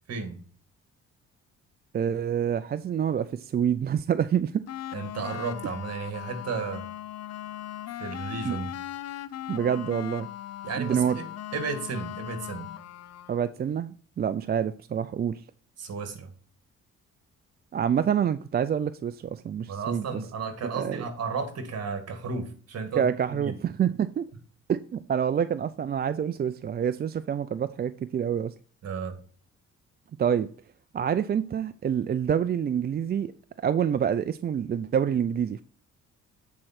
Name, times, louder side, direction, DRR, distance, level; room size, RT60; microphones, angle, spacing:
voice 1, 0.1-0.4 4.9-6.9 8.0-8.7 10.6-11.3 11.5-12.7 15.8-16.3 19.7-23.1 23.4-23.5 28.8-29.2, right 5 dB, 55° right, 1.9 m, -33 dB
voice 2, 1.9-4.6 8.5-8.6 9.5-10.3 10.8-11.2 13.3-15.4 17.7-20.2 20.6-21.0 23.0-24.3 24.7-28.5 30.2-30.5 30.9-33.3 33.6-35.6, right 8 dB, 35° right, 0.4 m, -27 dB
sound 1, 4.7-13.5, left 12 dB, 55° left, 0.6 m, -38 dB
8.5 x 4.5 x 4.3 m
cardioid pair, 90°, 30 cm